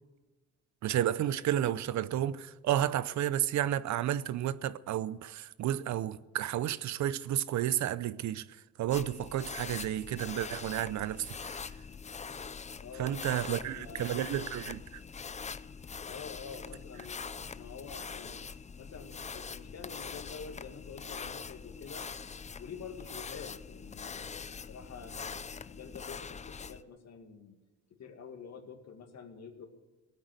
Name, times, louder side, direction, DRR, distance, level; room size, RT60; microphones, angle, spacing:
voice 1, 0.8-11.6 13.0-15.0, right 12 dB, 70° right, 0.7 m, -32 dB
sound 1, 8.9-26.8, left 5 dB, 25° left, 0.5 m, -43 dB
voice 2, 12.8-14.3 16.1-17.2 17.6-18.4 18.8-22.1 22.6-27.6 27.9-29.7, left 6 dB, 60° left, 2.3 m, -47 dB
18.0 x 9.4 x 8.0 m
cardioid pair, 90°, 30 cm